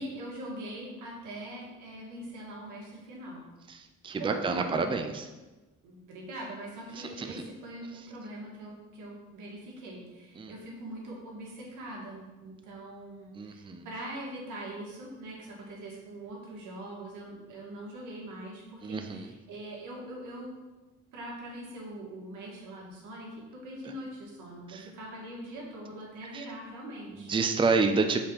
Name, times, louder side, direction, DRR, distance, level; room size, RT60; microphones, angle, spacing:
voice 1, 0.0-3.4 4.2-5.1 5.8-20.6 21.1-27.3, right 1 dB, 85° right, -3 dB, 1.9 m, -42 dB
voice 2, 3.7-5.3 7.2-7.4 10.4-10.5 13.3-13.9 18.8-19.3 24.7-24.9 26.3-26.4 27.1-28.2, right 4 dB, 15° right, 6 dB, 0.5 m, -29 dB
5.2 x 4.2 x 5.4 m, 1.2 s
cardioid pair, 90°, 30 cm